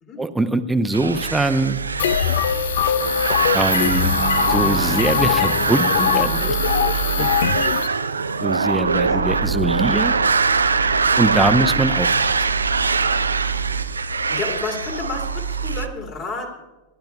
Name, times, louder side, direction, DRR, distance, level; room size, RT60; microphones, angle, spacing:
voice 1, 0.2-1.8 3.5-4.2 4.5-6.5 7.2-7.3 8.4-10.1 11.2-12.3, right 2 dB, 5° right, 9 dB, 0.8 m, -22 dB
sound 1, 0.9-15.9, right 4 dB, 75° right, 0.5 m, -22 dB
sound 2, 2.0-7.9, left 9 dB, 60° left, 0.5 m, -22 dB
sound 3, 3.8-8.4, left 3 dB, 15° left, 1.2 m, -34 dB
voice 2, 14.3-16.6, left 4 dB, 35° left, 2 dB, 3.0 m, -31 dB
29.0 x 11.5 x 2.3 m, 1.1 s
figure-of-eight pair, 90°, 0 cm